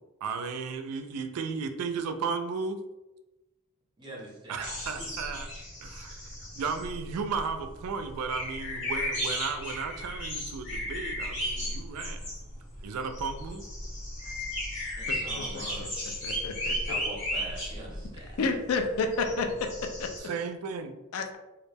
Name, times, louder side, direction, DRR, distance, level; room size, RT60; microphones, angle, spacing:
voice 1, 0.2-2.8 4.5-5.5 5.8-12.3 12.8-13.6 20.2-20.9, right 5 dB, 85° right, 8 dB, 0.3 m, -34 dB
voice 2, 4.0-5.1 15.0-15.9 16.9-18.4, right 1 dB, 20° right, -2 dB, 0.7 m, -43 dB
sound 1, 4.6-20.2, equal, 55° left, 1.3 m, -35 dB
voice 3, 15.1-15.4 16.2-16.7 18.4-19.7 20.0-20.1 21.1-21.4, left 4 dB, 75° left, 5 dB, 0.4 m, -30 dB
2.3 x 2.1 x 3.3 m, 1.0 s
head